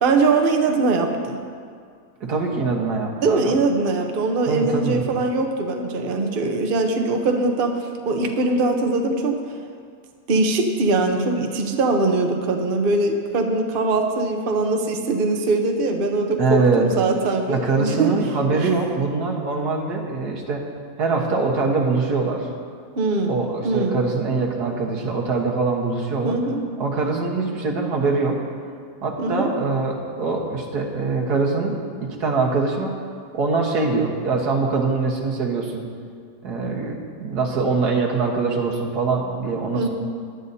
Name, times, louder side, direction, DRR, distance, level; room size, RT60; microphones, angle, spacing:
voice 1, 0.0-1.4 3.2-9.4 10.3-18.1 22.9-24.0 26.2-26.6 29.2-29.5 39.7-39.9, right 3 dB, 40° right, 3 dB, 0.9 m, -22 dB
voice 2, 2.2-3.6 4.5-5.1 16.4-16.9 17.5-20.6 21.0-22.5 23.3-26.4 26.8-28.4 29.0-32.9 33.3-35.8 36.4-39.9, right 4 dB, 80° right, 0 dB, 1.9 m, -23 dB
18.5 x 11.0 x 2.8 m, 2.2 s
omnidirectional pair, 1.7 m